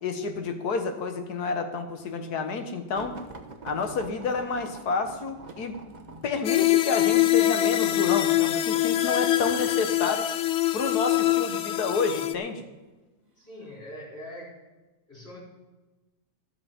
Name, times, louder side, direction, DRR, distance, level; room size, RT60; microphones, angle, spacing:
voice 1, 0.0-3.2 3.6-5.7 6.2-10.3 10.7-12.6, left 4 dB, 60° left, 7 dB, 1.7 m, -29 dB
sound 1, 2.9-9.8 10.5-10.9 11.9-12.5 13.3-13.5 13.8-13.9, right 3 dB, 30° right, 0.9 m, -45 dB
sound 2, 6.4-12.3, left 14 dB, 80° left, 0.6 m, -24 dB
voice 2, 13.4-14.5 15.1-15.4, left 1 dB, 35° left, -5 dB, 4.4 m, -42 dB
13.0 x 12.5 x 4.4 m, 1.2 s
omnidirectional pair, 1.9 m